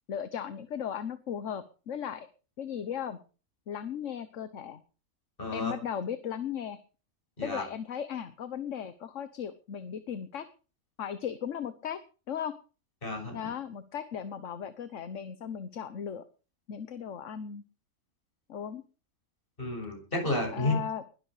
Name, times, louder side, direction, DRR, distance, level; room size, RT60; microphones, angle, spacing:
voice 1, 0.1-2.3 2.6-3.2 3.7-4.8 5.5-6.8 7.4-10.5 11.0-12.0 12.3-12.6 13.3-16.2 16.7-17.6 18.5-18.8 20.5-21.0, left 8 dB, 60° left, 12 dB, 1.4 m, -36 dB
voice 2, 5.4-5.7 7.4-7.6 13.0-13.4 19.6-20.7, left 2 dB, 40° left, 3 dB, 6.7 m, -31 dB
21.0 x 12.0 x 5.0 m, 0.38 s
omnidirectional pair, 1.5 m